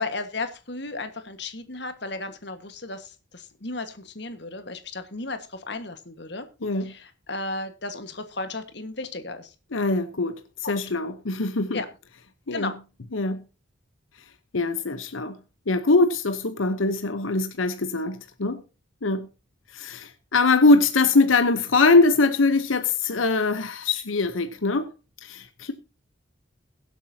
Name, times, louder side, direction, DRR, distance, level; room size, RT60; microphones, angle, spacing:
voice 1, 0.0-6.5 6.8-9.5 10.6-10.8 11.7-11.9 12.5-12.7, left 3 dB, 60° left, 1.6 m, -34 dB
voice 2, 6.6-6.9 9.7-11.8 12.5-12.7 13.1-13.4 14.5-15.4 15.7-18.6 19.0-19.3 19.7-24.9 25.2-25.7, left 3 dB, 90° left, 0.9 m, -22 dB
21.5 x 8.1 x 2.8 m
head